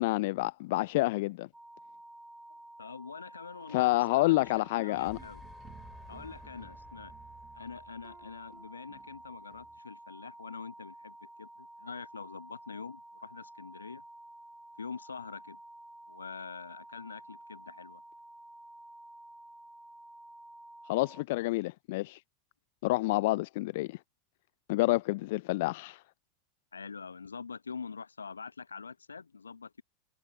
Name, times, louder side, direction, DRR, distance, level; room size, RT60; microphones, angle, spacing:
voice 1, 0.0-1.5 3.7-5.2 20.9-22.2 22.8-24.0 24.7-26.0, left 20 dB, 60° left, 0.5 m, -28 dB
sound 1, 1.5-21.2, right 1 dB, 5° right, 1.2 m, -51 dB
voice 2, 2.5-5.4 6.1-7.1 7.5-14.0 14.8-15.6 16.1-18.0 26.7-29.8, left 5 dB, 80° left, 1.1 m, -45 dB
sound 2, 4.3-9.8, right 9 dB, 30° right, 2.5 m, -57 dB
sound 3, 4.9-8.9, left 7 dB, 25° left, 4.2 m, -55 dB
figure-of-eight pair, 85°, 0 cm